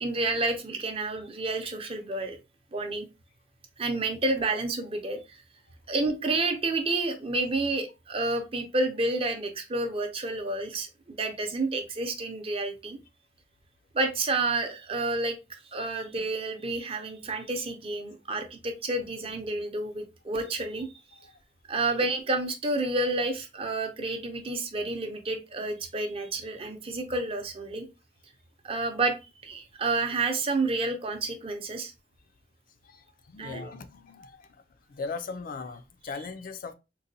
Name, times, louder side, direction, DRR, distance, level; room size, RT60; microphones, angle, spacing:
voice 1, 0.0-2.4 2.7-3.0 3.8-5.4 5.9-13.0 13.9-15.4 15.7-20.9 21.7-27.9 28.6-29.2 29.4-31.9 33.4-33.7, right 2 dB, 35° right, 0.6 m, -30 dB
voice 2, 32.8-34.6 34.9-36.7, left 4 dB, 50° left, 0.4 m, -39 dB
3.8 x 2.2 x 2.6 m
head